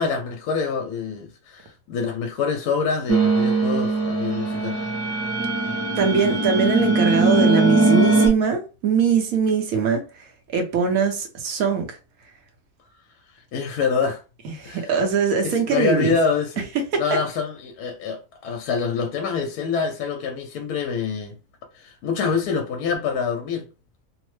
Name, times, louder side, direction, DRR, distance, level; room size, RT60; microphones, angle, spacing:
voice 1, 0.0-4.8 13.5-14.2 14.6-14.9 15.4-16.7 17.0-21.3 21.7-23.6, left 5 dB, 75° left, 1.1 m, -26 dB
sound 1, 3.1-8.3, right 3 dB, 20° right, 0.4 m, -20 dB
voice 2, 5.9-10.0 10.5-12.0 14.4-16.2 16.9-17.0, right 6 dB, 65° right, 1.1 m, -21 dB
3.0 x 2.0 x 3.1 m
omnidirectional pair, 1.7 m